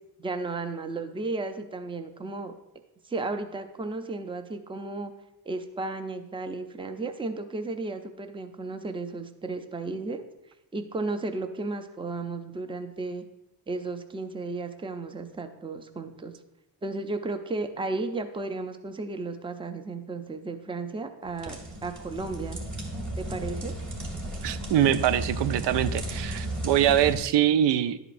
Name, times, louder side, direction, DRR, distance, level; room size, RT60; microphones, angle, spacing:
voice 1, 0.2-2.5 3.0-5.1 5.5-10.2 10.7-13.2 13.7-16.3 16.8-22.6 23.2-23.7, right 3 dB, 15° right, 8 dB, 0.5 m, -34 dB
sound 1, 21.3-27.2, right 1 dB, 45° right, 1.6 m, -34 dB
voice 2, 24.4-28.0, right 11 dB, 85° right, 13 dB, 0.5 m, -23 dB
11.0 x 7.9 x 2.6 m, 0.90 s
cardioid pair, 125°, 41 cm